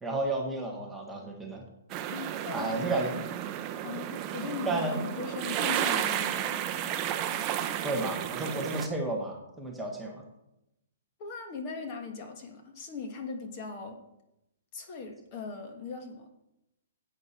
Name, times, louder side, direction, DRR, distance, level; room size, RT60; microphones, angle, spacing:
voice 1, 0.0-1.7 2.5-3.1 4.6-5.0 7.8-10.2, right 2 dB, 5° right, -1 dB, 1.1 m, -32 dB
sound 1, 1.9-8.9, right 10 dB, 20° right, 0.6 m, -32 dB
voice 2, 2.1-2.9 3.8-6.6 11.2-14.0 14.7-16.3, left 4 dB, 30° left, 4 dB, 1.4 m, -39 dB
10.5 x 8.3 x 4.3 m, 0.88 s
hypercardioid pair, 165°, 0 cm